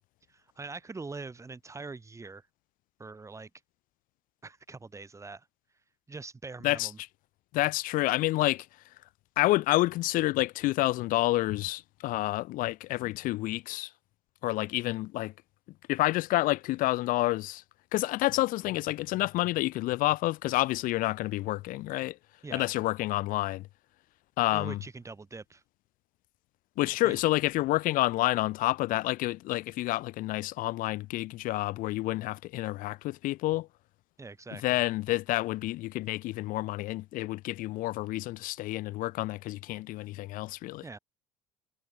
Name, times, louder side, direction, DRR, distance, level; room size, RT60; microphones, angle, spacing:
voice 1, 0.3-2.5 3.0-3.5 4.4-5.5 6.1-7.0 22.4-22.7 24.5-25.6 27.0-27.2 34.2-34.8 40.8-41.0, right 3 dB, 20° right, 1.3 m, -43 dB
voice 2, 7.5-8.7 9.4-13.9 14.4-15.3 15.9-17.6 17.9-22.2 22.5-23.6 24.4-24.8 26.8-33.7 34.5-40.8, left 18 dB, 60° left, 0.6 m, -29 dB
hypercardioid pair, 70°, 16 cm